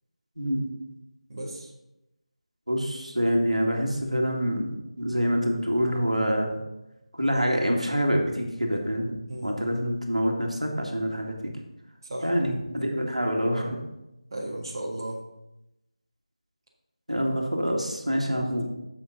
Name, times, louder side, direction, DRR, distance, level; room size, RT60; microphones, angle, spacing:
voice 1, 0.4-0.7 2.7-6.6 7.2-11.4 12.2-13.8 17.1-18.7, equal, 90° right, 1 dB, 2.0 m, -26 dB
voice 2, 1.3-1.7 9.3-9.5 12.0-12.3 14.3-15.2 18.2-18.4, right 1 dB, 35° right, -3 dB, 1.8 m, -35 dB
9.5 x 7.2 x 4.0 m, 0.92 s
figure-of-eight pair, 165°, 4 cm